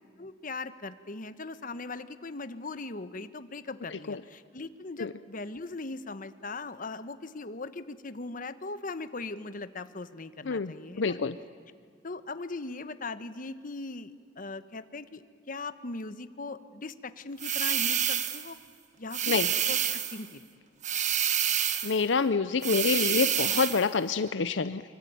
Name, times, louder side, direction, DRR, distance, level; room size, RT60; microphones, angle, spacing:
voice 1, 0.2-11.2 12.0-18.6 19.0-19.4 19.7-20.5, left 3 dB, 45° left, 12 dB, 1.1 m, -39 dB
voice 2, 10.4-11.4 19.3-19.5 21.8-24.8, left 5 dB, 75° left, 13 dB, 0.6 m, -27 dB
sound 1, 17.4-18.5 19.1-20.2 20.8-22.0 22.6-23.9, right 9 dB, 40° right, 1.3 m, -28 dB
25.0 x 23.5 x 9.4 m, 2.1 s
head